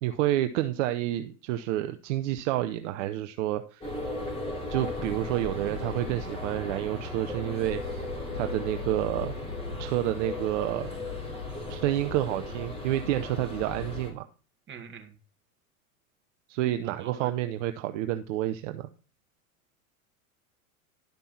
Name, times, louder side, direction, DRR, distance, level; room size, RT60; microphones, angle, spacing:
voice 1, 0.0-3.9 4.7-8.1 8.3-9.3 9.8-10.9 11.7-14.2 16.5-18.9, right 14 dB, 55° right, 9 dB, 0.8 m, -29 dB
sound 1, 3.8-14.1, left 2 dB, 15° left, 3.9 m, -36 dB
voice 2, 14.7-15.1 17.0-17.3, right 7 dB, 25° right, 4 dB, 2.2 m, -43 dB
12.0 x 5.3 x 4.3 m, 0.38 s
hypercardioid pair, 100°, 43 cm